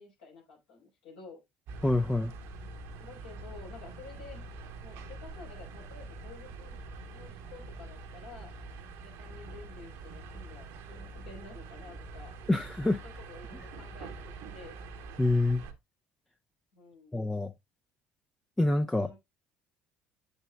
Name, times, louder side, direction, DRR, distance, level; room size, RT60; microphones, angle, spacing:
voice 1, 0.0-1.4 3.0-4.4 4.8-6.8 7.1-8.5 9.0-12.4 13.0-14.8 16.7-17.3 18.8-19.2, left 4 dB, 70° left, 4.2 m, -51 dB
sound 1, 1.7-15.7, right 3 dB, 55° right, 1.0 m, -45 dB
voice 2, 1.8-2.3 12.5-13.0 15.2-15.6 17.1-17.5 18.6-19.1, left 2 dB, 10° left, 0.6 m, -26 dB
8.2 x 6.8 x 2.2 m
figure-of-eight pair, 55°, 5 cm